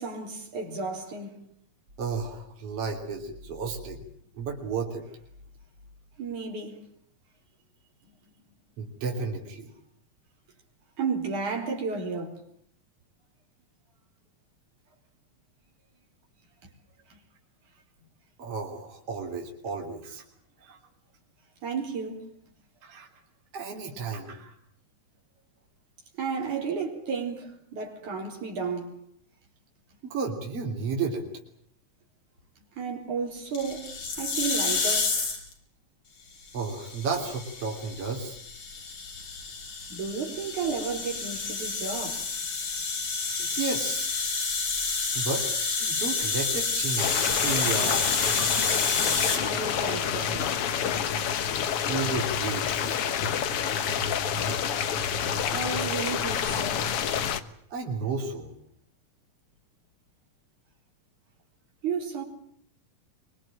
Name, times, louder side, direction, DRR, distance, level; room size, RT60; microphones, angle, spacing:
voice 1, 0.0-1.4 6.2-6.9 8.0-8.1 11.0-12.4 17.1-17.2 21.6-22.3 26.2-29.0 32.8-33.9 34.2-35.2 39.9-42.2 48.5-48.6 49.4-50.7 55.5-56.9 61.8-62.2, right 5 dB, 75° right, 5.3 m, -33 dB
voice 2, 2.0-4.0 4.3-5.0 8.8-9.7 18.4-20.2 20.7-20.8 22.8-23.1 23.5-24.5 30.0-31.3 36.5-38.4 43.4-44.1 45.1-45.5 45.8-48.6 51.9-53.2 57.7-58.5, right 4 dB, 50° right, 4.1 m, -33 dB
sound 1, 33.5-35.5 36.6-49.4, left 4 dB, 85° left, 6.3 m, -29 dB
sound 2, 47.0-57.4, left 8 dB, 55° left, 1.9 m, -28 dB
24.0 x 23.5 x 8.9 m
omnidirectional pair, 3.5 m